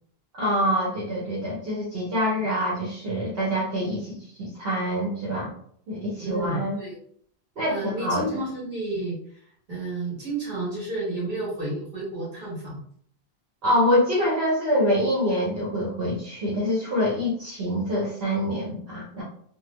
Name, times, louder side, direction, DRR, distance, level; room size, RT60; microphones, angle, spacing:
voice 1, 0.3-5.5 5.9-6.8 7.6-8.2 13.6-19.2, equal, 70° right, -5 dB, 1.0 m, -25 dB
voice 2, 6.2-7.0 7.7-9.2 9.7-12.8, right 2 dB, 50° right, -5 dB, 1.6 m, -31 dB
3.3 x 2.0 x 3.2 m, 0.63 s
omnidirectional pair, 1.0 m